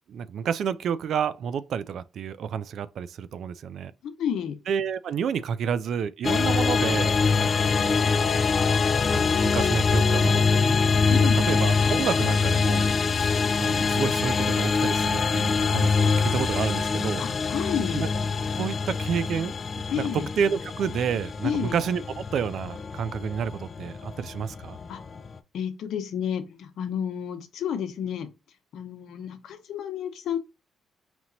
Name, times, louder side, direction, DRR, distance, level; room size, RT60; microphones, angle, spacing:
voice 1, 0.1-3.9 4.7-8.2 9.1-10.8 11.1-17.5 17.9-18.1 18.5-24.8, right 7 dB, 65° right, 0.3 m, -30 dB
voice 2, 4.0-4.6 11.1-11.6 17.2-18.0 19.9-20.3 21.4-21.8 24.9-25.0 25.5-28.3 28.7-30.4, left 8 dB, 75° left, 0.8 m, -30 dB
sound 1, 6.2-25.4, left 4 dB, 40° left, 0.3 m, -24 dB
4.3 x 2.8 x 2.6 m
cardioid pair, 90°, 0 cm